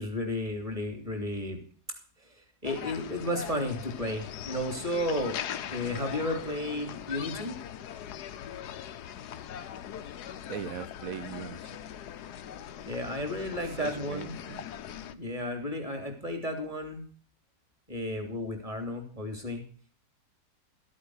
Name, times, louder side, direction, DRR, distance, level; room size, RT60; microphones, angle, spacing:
voice 1, 0.0-1.6 2.2-5.4 5.7-7.6 12.8-14.3 15.1-17.0 17.9-19.6, left 1 dB, 20° right, 3.1 m, -33 dB
sound 1, 2.6-15.1, left 10 dB, 70° left, 1.3 m, -41 dB
voice 2, 10.5-11.8 13.6-14.7, right 9 dB, 60° right, 1.1 m, -40 dB
13.5 x 8.5 x 6.3 m
omnidirectional pair, 1.9 m